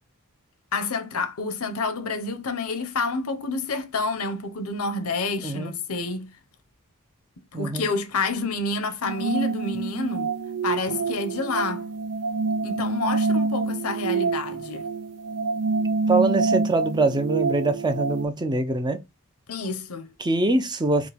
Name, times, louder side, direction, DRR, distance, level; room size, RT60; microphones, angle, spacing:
voice 1, 0.7-6.3 7.5-10.3 10.6-11.9 12.6-14.9 19.5-20.1, left 3 dB, 75° left, 0.7 m, -28 dB
voice 2, 5.4-5.7 7.5-7.9 16.1-19.0 20.2-21.1, right 2 dB, 20° right, 0.5 m, -23 dB
sound 1, 9.0-18.3, right 4 dB, 85° right, 0.5 m, -26 dB
5.0 x 2.2 x 3.3 m
head